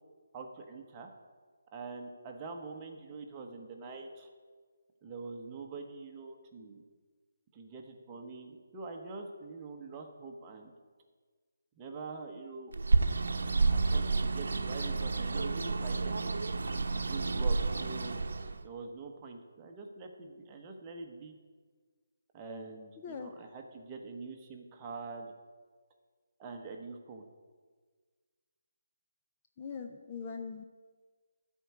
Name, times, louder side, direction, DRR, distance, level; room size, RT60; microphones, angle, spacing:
voice 1, 0.3-1.1 1.7-4.3 5.0-6.8 7.5-10.7 11.7-12.7 13.7-16.3 16.9-18.2 18.6-21.3 22.3-25.3 26.4-27.3, right 4 dB, 15° right, 2 dB, 1.0 m, -45 dB
Bird, 12.7-18.6, right 3 dB, 75° right, 0.8 m, -30 dB
voice 2, 23.0-23.4 29.6-30.6, left 6 dB, 20° left, 4 dB, 0.5 m, -41 dB
13.5 x 4.5 x 8.3 m, 1.5 s
hypercardioid pair, 170°, 0 cm